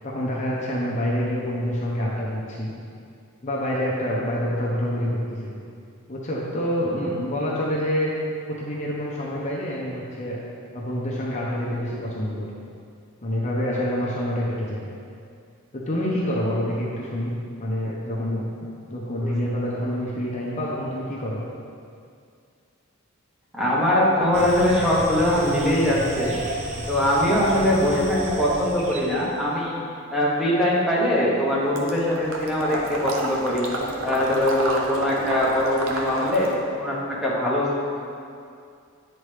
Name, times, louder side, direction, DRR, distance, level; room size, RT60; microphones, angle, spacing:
voice 1, 0.0-2.7 3.4-5.6 6.1-8.1 8.5-10.4 10.7-12.5 13.2-14.8 15.7-17.3 17.6-21.4, equal, 35° left, -5 dB, 0.8 m, -27 dB
voice 2, 23.5-26.3 26.9-29.8 30.1-33.7 34.0-36.5 36.8-37.8, left 1 dB, ahead, -7 dB, 1.1 m, -22 dB
sound 1, 24.3-29.3, right 1 dB, 30° right, 0.6 m, -32 dB
Water / Liquid, 31.8-36.6, right 2 dB, 70° right, 0.7 m, -30 dB
9.5 x 4.3 x 3.3 m, 2.4 s
head